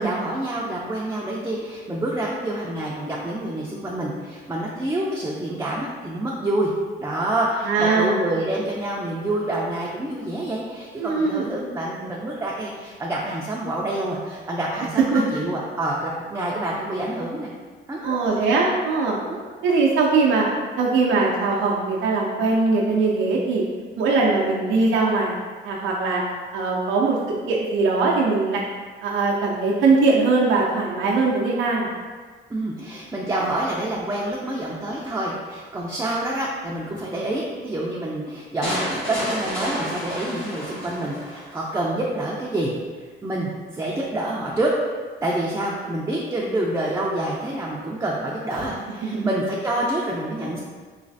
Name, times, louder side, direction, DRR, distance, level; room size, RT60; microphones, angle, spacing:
voice 1, 0.0-6.7 7.0-17.5 17.9-18.2 19.3-19.4 32.5-42.7 43.0-44.7 45.2-50.6, right 1 dB, 15° right, -4 dB, 0.4 m, -27 dB
voice 2, 7.6-8.3 11.0-11.5 15.1-15.2 18.0-19.2 19.6-20.5 20.8-23.6 24.0-25.3 25.6-26.2 26.5-28.6 29.0-31.9 49.1-49.3, right 3 dB, 85° right, -3 dB, 0.5 m, -21 dB
sound 1, 38.6-41.6, equal, 80° left, 1.5 m, -30 dB
3.1 x 3.1 x 2.6 m, 1.5 s
cardioid pair, 90°, 20 cm